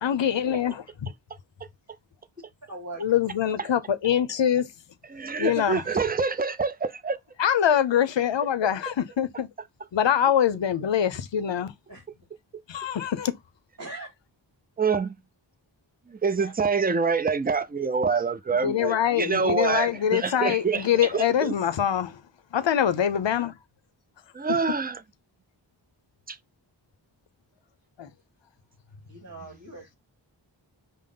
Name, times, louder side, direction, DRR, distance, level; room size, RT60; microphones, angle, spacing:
voice 1, 0.0-0.8 3.0-4.7 5.4-5.8 7.4-9.5 9.9-11.7 12.7-13.3 18.6-22.2 22.5-23.5 28.0-28.1, left 9 dB, 70° left, 0.6 m, -24 dB
voice 2, 2.7-3.1 11.9-12.0 13.8-14.1 16.4-16.5 29.1-30.0, right 2 dB, 40° right, 1.8 m, -40 dB
voice 3, 5.1-7.2 14.8-15.1 16.1-21.5 24.3-25.0 26.3-26.4, right 5 dB, 20° right, 0.4 m, -26 dB
5.2 x 2.0 x 3.7 m
wide cardioid pair, 45°, 46 cm